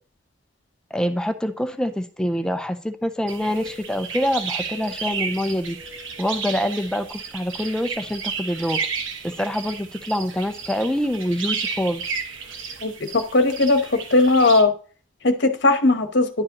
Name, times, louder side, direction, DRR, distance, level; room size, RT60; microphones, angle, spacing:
voice 1, 0.9-5.8 6.2-8.8 9.2-12.0, equal, 5° left, 9 dB, 0.3 m, -25 dB
sound 1, 3.3-14.6, right 5 dB, 85° right, 1.0 m, -32 dB
voice 2, 12.8-14.7 15.2-16.3, left 2 dB, 60° left, 8 dB, 1.0 m, -18 dB
10.5 x 4.8 x 2.9 m, 0.40 s
head